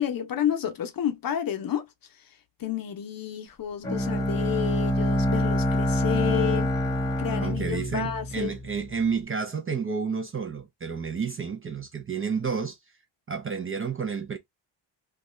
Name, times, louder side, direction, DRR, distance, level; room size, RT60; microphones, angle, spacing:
voice 1, 0.0-1.9 2.6-6.7 7.2-8.5, left 10 dB, 50° left, 0.6 m, -30 dB
Bowed string instrument, 3.8-8.8, equal, 10° left, 1.0 m, -26 dB
voice 2, 7.4-12.8 13.3-14.4, right 5 dB, 30° right, 0.4 m, -30 dB
2.6 x 2.3 x 3.0 m
wide cardioid pair, 125°, 46 cm